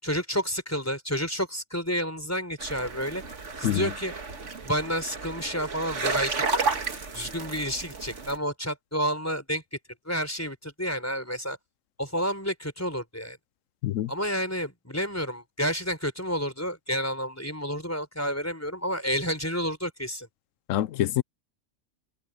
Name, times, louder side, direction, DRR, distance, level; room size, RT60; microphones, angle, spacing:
voice 1, 0.0-3.2 3.6-4.1 4.6-6.8 7.1-9.6 10.0-11.6 12.0-13.4 14.1-20.3, equal, 10° left, 4.6 m, -30 dB
sound 1, 2.6-8.4, right 4 dB, 65° right, 2.2 m, -32 dB
voice 2, 20.7-21.2, left 13 dB, 80° left, 0.9 m, -25 dB
omnidirectional pair, 1.3 m